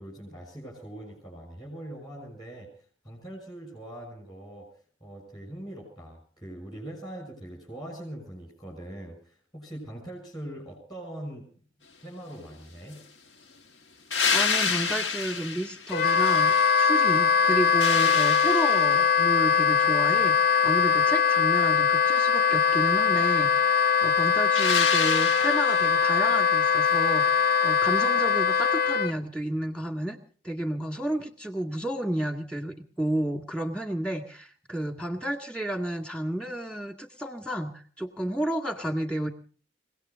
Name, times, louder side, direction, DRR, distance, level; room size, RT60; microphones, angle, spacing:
voice 1, 0.0-2.7 3.0-4.7 5.0-11.5 12.0-13.0, right 1 dB, 20° left, -3 dB, 6.4 m, -42 dB
sound 1, 14.1-17.0 17.4-19.2 24.5-26.0 28.6-28.7, left 5 dB, 75° left, 1.4 m, -29 dB
voice 2, 14.3-30.2 30.4-39.3, right 1 dB, 5° left, 5 dB, 1.9 m, -31 dB
Wind instrument woodwind instrument, 15.9-29.1, left 7 dB, 50° left, 0.8 m, -22 dB
30.0 x 17.5 x 2.6 m, 0.41 s
head